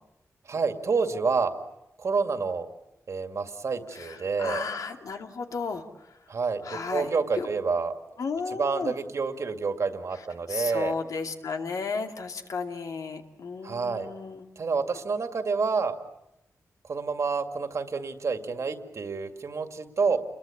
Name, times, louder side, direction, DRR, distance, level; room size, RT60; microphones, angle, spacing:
voice 1, 0.5-1.5 2.0-2.7 3.1-4.6 6.3-7.9 8.6-10.9 13.6-14.1 14.6-16.0 16.9-20.2, right 4 dB, 60° right, 7 dB, 2.2 m, -28 dB
voice 2, 3.9-5.8 6.6-7.1 7.3-7.5 8.2-8.9 10.5-14.5, left 4 dB, 80° left, 5 dB, 2.4 m, -33 dB
29.0 x 22.0 x 8.5 m, 0.87 s
wide cardioid pair, 135°, 6 cm